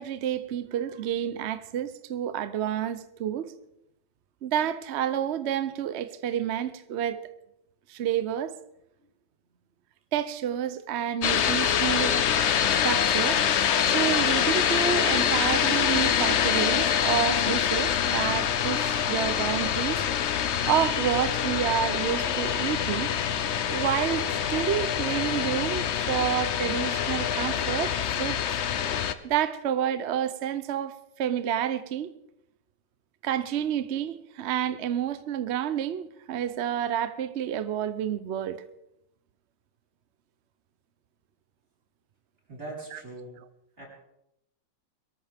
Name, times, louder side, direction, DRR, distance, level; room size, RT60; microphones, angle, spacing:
voice 1, 0.0-3.5 4.4-7.2 7.9-8.5 10.1-12.3 12.7-13.4 13.9-20.0 20.7-23.1 23.7-28.4 29.2-30.9 31.2-32.1 33.2-38.6 42.9-43.0, right 10 dB, 60° right, 0.7 m, -29 dB
sound 1, 11.2-29.1, left 9 dB, 80° left, 0.6 m, -25 dB
voice 2, 42.5-43.4 43.8-43.9, right 2 dB, 35° right, 5.1 m, -41 dB
23.0 x 13.5 x 3.6 m
omnidirectional pair, 2.0 m